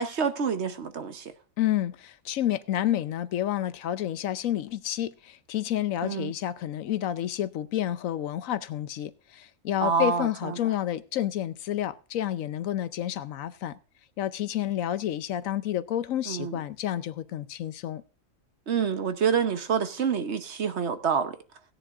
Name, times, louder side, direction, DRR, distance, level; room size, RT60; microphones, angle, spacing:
voice 1, 0.0-1.3 6.0-6.3 9.8-10.6 16.3-16.6 18.7-21.4, right 6 dB, 55° right, 1.2 m, -27 dB
voice 2, 1.6-13.8 14.2-18.0, left 12 dB, 75° left, 1.0 m, -30 dB
16.5 x 10.0 x 2.5 m
omnidirectional pair, 1.4 m